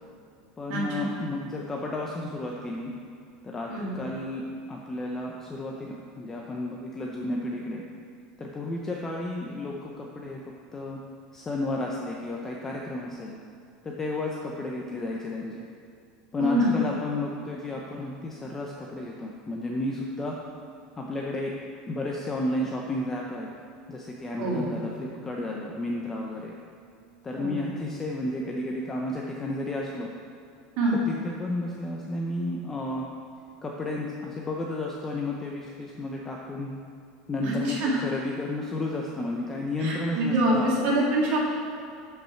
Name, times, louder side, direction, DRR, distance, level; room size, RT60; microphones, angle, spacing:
voice 1, 0.6-2.9 3.4-7.8 8.4-10.4 10.7-11.0 11.3-13.4 13.8-15.6 16.3-20.4 21.0-21.5 21.9-23.5 23.9-26.5 27.2-30.1 30.9-33.1 33.6-36.7 37.3-40.9, left 2 dB, 15° left, -1 dB, 0.5 m, -32 dB
voice 2, 16.4-16.8 24.4-24.8 27.4-27.7 30.8-31.0 37.4-38.0 39.8-41.4, right 1 dB, 50° right, -4 dB, 2.4 m, -25 dB
12.0 x 5.6 x 4.4 m, 2.5 s
cardioid pair, 175°, 3 cm